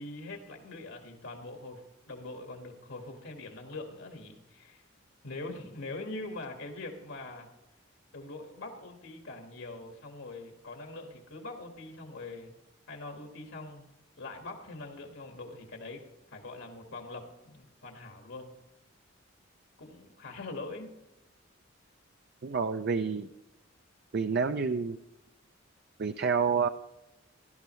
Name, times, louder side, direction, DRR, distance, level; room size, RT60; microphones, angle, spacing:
voice 1, 0.0-4.8 5.2-7.5 8.1-12.5 12.9-13.9 14.2-16.0 16.3-18.5 19.8-20.9, left 2 dB, 75° left, 3 dB, 1.7 m, -43 dB
voice 2, 22.4-23.3 24.1-25.0 26.0-26.7, right 5 dB, 50° right, 8 dB, 0.4 m, -28 dB
16.5 x 12.0 x 3.1 m, 0.92 s
head